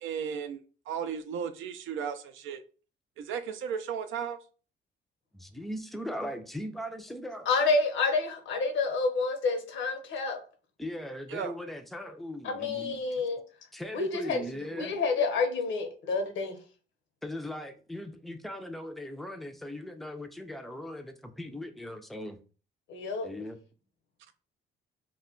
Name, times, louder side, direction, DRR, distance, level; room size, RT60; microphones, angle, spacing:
voice 1, 0.0-0.6 0.9-2.6 3.2-4.4 11.3-11.5, right 7 dB, 80° right, 0.4 m, -35 dB
voice 2, 5.3-7.5 10.8-13.0 13.7-14.9 17.2-22.4 23.2-23.6, left 1 dB, ahead, 0.4 m, -39 dB
voice 3, 7.5-10.4 12.4-13.4 13.9-14.5 14.7-16.6 22.9-23.3, left 4 dB, 70° left, 0.7 m, -28 dB
2.2 x 2.1 x 3.6 m
cardioid pair, 90°, 20 cm